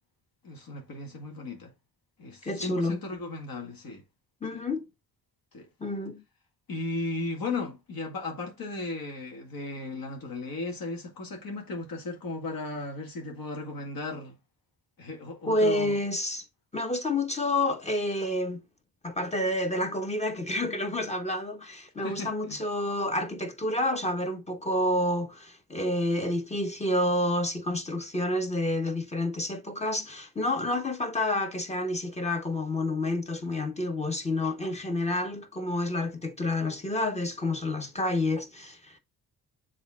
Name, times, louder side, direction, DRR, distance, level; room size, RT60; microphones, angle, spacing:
voice 1, 0.4-1.7 2.2-4.0 4.5-4.6 5.5-5.7 6.7-14.4 15.0-16.0 22.0-22.6, left 3 dB, 65° left, 2.0 m, -36 dB
voice 2, 2.4-3.0 4.4-4.9 5.8-6.2 15.5-16.4 16.7-18.6 19.0-39.0, left 1 dB, 15° left, 1.1 m, -29 dB
7.1 x 3.7 x 3.7 m
cardioid pair, 100°, 38 cm